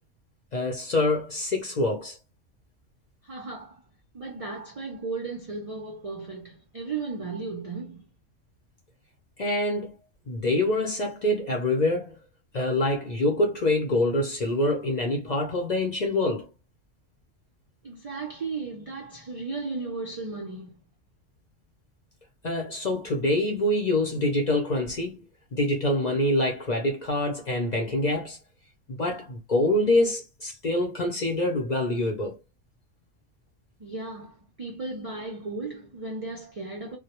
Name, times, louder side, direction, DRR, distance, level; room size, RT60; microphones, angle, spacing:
voice 1, 0.5-2.2 9.4-9.9 10.3-12.1 12.5-16.5 22.4-25.2 25.5-28.4 28.9-32.4, left 1 dB, 50° left, 0.5 m, -25 dB
voice 2, 3.2-3.8 4.1-8.1 17.8-20.7 33.8-37.0, right 3 dB, 65° right, 0.3 m, -35 dB
2.2 x 2.0 x 2.8 m
omnidirectional pair, 1.3 m